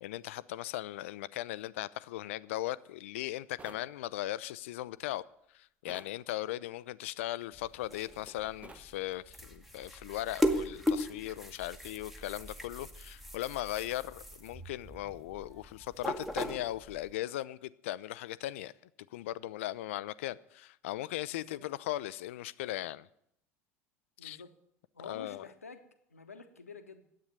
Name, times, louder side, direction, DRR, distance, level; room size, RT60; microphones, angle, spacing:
voice 1, 0.0-5.2 5.5-18.7 19.1-23.1 24.2-24.4 25.0-25.4, left 15 dB, 60° left, 0.4 m, -38 dB
sound 1, 3.6-3.9 5.9-6.2 8.6-8.9, right 3 dB, 15° right, 0.9 m, -51 dB
sound 2, 7.5-17.1, left 1 dB, ahead, 1.2 m, -37 dB
voice 2, 24.2-24.5 24.9-25.8 26.1-27.1, left 4 dB, 80° left, 1.1 m, -49 dB
10.0 x 8.4 x 9.3 m
figure-of-eight pair, 70°, 8 cm